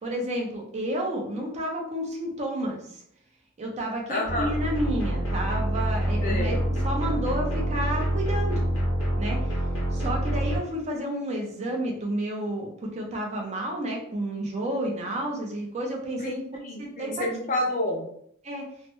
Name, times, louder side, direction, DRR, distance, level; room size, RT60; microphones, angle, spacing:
voice 1, 0.0-3.0 3.6-6.6 6.8-8.6 9.2-9.4 9.9-16.4 17.0-17.3 18.4-18.6, right 1 dB, 35° right, 0 dB, 0.6 m, -30 dB
voice 2, 4.1-4.6 6.2-6.6 16.2-18.1, left 1 dB, 40° left, -1 dB, 0.6 m, -29 dB
sound 1, 4.2-10.6, right 1 dB, 85° left, 1.3 m, -26 dB
3.2 x 2.2 x 2.9 m, 0.69 s
head